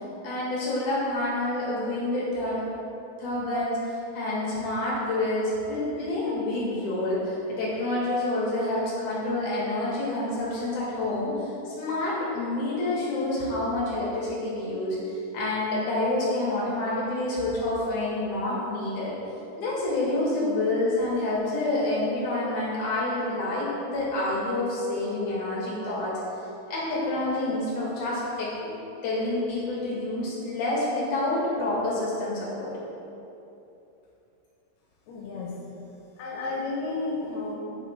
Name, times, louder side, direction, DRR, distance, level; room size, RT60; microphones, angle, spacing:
voice 1, 0.2-2.6 3.2-19.1 19.6-26.1 26.7-28.7 29.0-32.7, left 2 dB, 55° left, -6 dB, 3.2 m, -28 dB
voice 2, 35.1-35.5 36.2-37.6, left 3 dB, 85° left, -3 dB, 3.1 m, -32 dB
9.0 x 7.4 x 3.7 m, 2.9 s
omnidirectional pair, 4.4 m